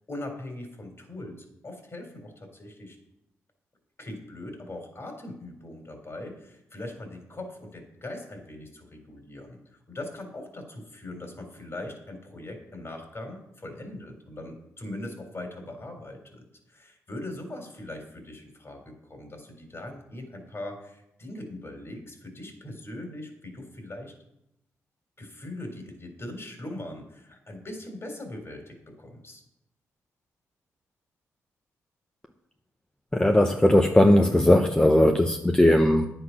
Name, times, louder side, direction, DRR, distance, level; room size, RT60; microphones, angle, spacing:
voice 1, 0.1-3.0 4.0-9.6 9.9-24.1 25.2-29.4, left 1 dB, 40° left, 4 dB, 3.9 m, -40 dB
voice 2, 33.1-36.1, left 1 dB, 15° left, 4 dB, 1.0 m, -19 dB
10.0 x 8.0 x 6.0 m, 0.83 s
supercardioid pair, 50°, 7 cm